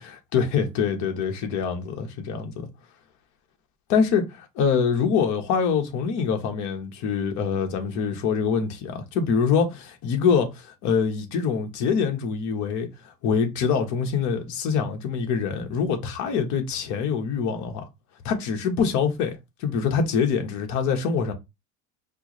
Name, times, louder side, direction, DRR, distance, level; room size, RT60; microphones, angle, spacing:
voice 1, 0.0-2.7 3.9-17.8 18.2-21.3, left 6 dB, 55° left, 1.1 m, -25 dB
4.5 x 2.0 x 3.0 m
cardioid pair, 135°, 35 cm